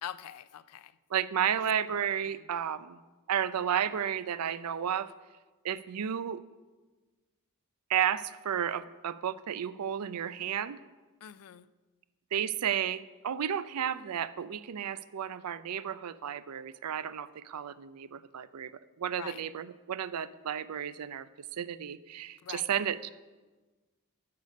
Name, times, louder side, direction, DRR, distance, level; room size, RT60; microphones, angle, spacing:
voice 1, 0.0-0.9 1.6-1.7 2.3-2.4 11.2-11.7 19.2-19.4 22.4-22.7, left 10 dB, 90° left, 16 dB, 0.4 m, -43 dB
voice 2, 1.1-3.0 3.3-5.1 5.6-6.4 7.9-10.8 12.3-18.7 19.0-21.3 21.5-23.1, right 9 dB, 90° right, 15 dB, 0.4 m, -32 dB
11.5 x 6.8 x 5.3 m, 1.3 s
head